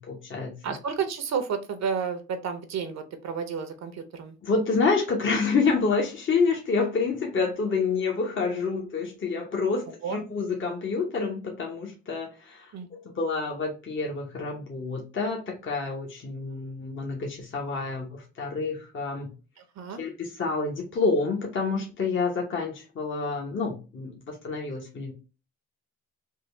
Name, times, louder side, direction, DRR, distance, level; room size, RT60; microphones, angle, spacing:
voice 1, 0.6-4.3 10.0-10.2 12.7-12.9 19.6-20.0, right 6 dB, 60° right, 9 dB, 0.7 m, -31 dB
voice 2, 4.5-9.8 10.1-12.3 13.2-15.4 15.7-17.2 17.5-18.1 18.4-19.3 20.0-20.1 20.4-24.1 24.4-25.1, left 4 dB, 40° left, 0 dB, 0.9 m, -27 dB
3.6 x 2.2 x 3.2 m, 0.32 s
cardioid pair, 90°, 30 cm